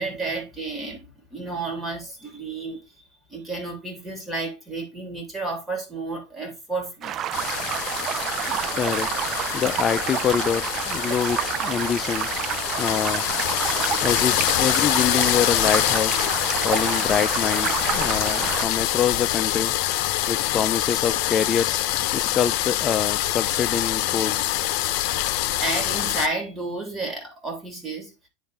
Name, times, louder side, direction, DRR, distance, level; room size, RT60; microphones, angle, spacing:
voice 1, 0.0-2.8 3.3-7.2 25.6-28.1, right 3 dB, 15° right, 3.0 m, -31 dB
sound 1, 7.0-18.7, right 10 dB, 40° right, 0.4 m, -29 dB
sound 2, 7.3-26.3, left 14 dB, 60° left, 0.8 m, -25 dB
voice 2, 8.5-9.2 9.5-12.3 12.8-13.3 14.0-16.3 16.6-19.7 20.3-21.8 22.1-24.4, left 8 dB, 30° left, 0.4 m, -25 dB
9.6 x 3.8 x 3.4 m
supercardioid pair, 115°, 0 cm